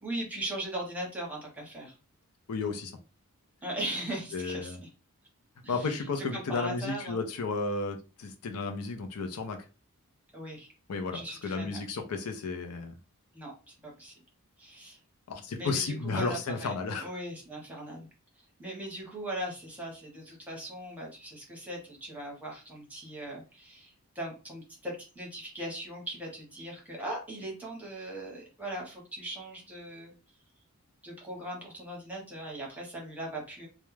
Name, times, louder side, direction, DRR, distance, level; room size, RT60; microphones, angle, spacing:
voice 1, 0.0-1.9 3.6-4.9 5.6-6.1 6.3-7.2 10.3-10.7 11.1-12.0 13.3-14.1 14.6-15.0 15.5-16.7 17.0-18.1 18.6-30.1 31.0-33.7, right 1 dB, 5° right, 0.9 m, -39 dB
voice 2, 2.5-2.9 4.3-4.8 5.7-9.6 10.9-12.9 15.3-17.1, left 4 dB, 80° left, 0.5 m, -33 dB
2.3 x 2.0 x 3.1 m
head